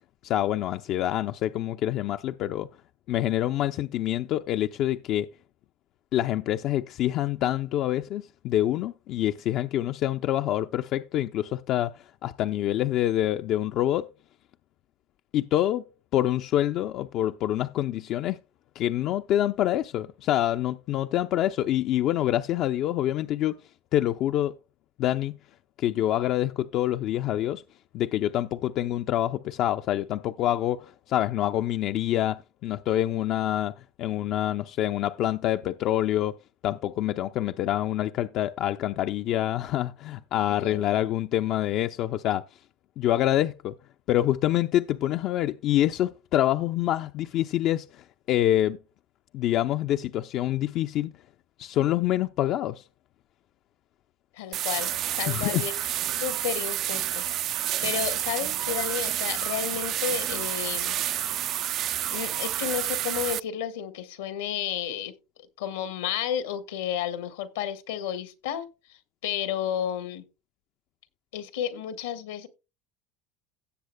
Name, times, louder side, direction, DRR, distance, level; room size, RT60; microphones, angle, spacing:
voice 1, 0.2-2.7 3.1-5.3 6.1-14.1 15.3-15.9 16.1-18.4 18.8-23.6 23.9-24.5 25.0-25.4 25.8-27.6 27.9-36.4 36.6-42.4 43.0-43.8 44.1-48.8 49.3-51.1 51.6-52.8 55.3-55.6, left 13 dB, 55° left, 0.5 m, -26 dB
voice 2, 40.5-40.8 54.4-55.7 56.2-57.3 57.8-61.0 62.1-65.1 65.6-68.7 69.2-70.2 71.3-72.5, left 10 dB, 90° left, 1.5 m, -32 dB
sound 1, 54.5-63.4, right 11 dB, 55° right, 0.4 m, -29 dB
17.0 x 7.6 x 2.2 m
supercardioid pair, 95°, 0 cm